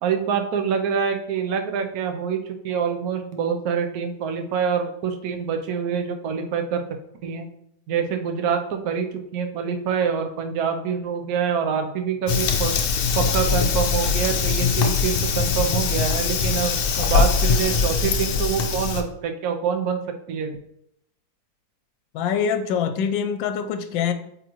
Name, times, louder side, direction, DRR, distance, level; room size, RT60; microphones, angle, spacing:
voice 1, 0.0-6.8 7.2-7.5 7.9-12.7 13.1-20.0 20.3-20.6, right 7 dB, 65° right, 5 dB, 1.1 m, -26 dB
Fire, 12.3-19.0, left 5 dB, 65° left, 1.0 m, -22 dB
voice 2, 22.1-24.1, left 7 dB, 85° left, 9 dB, 1.3 m, -24 dB
8.3 x 3.7 x 3.0 m, 0.76 s
omnidirectional pair, 2.0 m